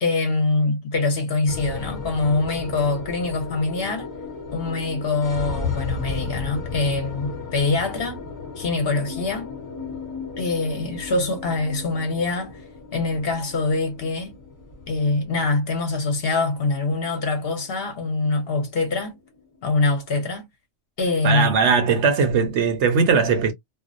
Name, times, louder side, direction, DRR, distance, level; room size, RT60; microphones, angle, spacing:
voice 1, 0.0-4.1 4.5-8.2 8.6-9.5 10.4-12.6 12.9-14.4 14.9-19.2 19.6-20.5 21.0-21.7, left 3 dB, 55° left, 0.8 m, -24 dB
sound 1, 1.5-19.8, left 4 dB, 15° left, 0.9 m, -35 dB
voice 2, 21.2-23.5, right 5 dB, 65° right, 0.9 m, -19 dB
2.4 x 2.0 x 2.5 m
omnidirectional pair, 1.3 m